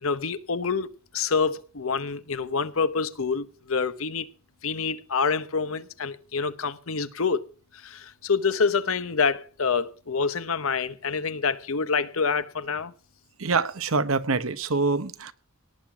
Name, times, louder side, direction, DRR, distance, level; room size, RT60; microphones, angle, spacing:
voice 1, 0.0-0.9 1.1-4.3 4.6-7.5 7.7-12.9, left 5 dB, 75° left, 1.0 m, -27 dB
voice 2, 13.4-15.3, right 4 dB, 70° right, 1.0 m, -25 dB
18.0 x 7.9 x 6.0 m
head